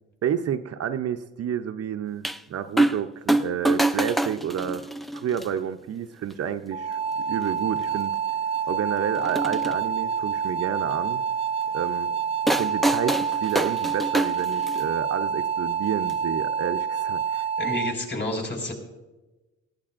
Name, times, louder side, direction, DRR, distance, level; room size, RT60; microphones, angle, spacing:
voice 1, 0.2-4.8 5.1-8.2 8.7-11.2 11.7-12.1 12.4-17.5, right 9 dB, 55° right, 8 dB, 0.6 m, -30 dB
sound 1, 2.2-2.4 2.8-3.0 3.3-5.4 6.3-6.4 7.4-7.5 7.8-7.9 9.2-9.8 12.5-14.9 16.1-16.2, right 1 dB, ahead, 0.4 m, -25 dB
sound 2, 6.7-17.9, right 7 dB, 20° right, 0.8 m, -27 dB
voice 2, 17.6-18.7, left 1 dB, 35° left, 0 dB, 5.0 m, -29 dB
19.5 x 15.5 x 2.5 m, 1.1 s
cardioid pair, 90°, 30 cm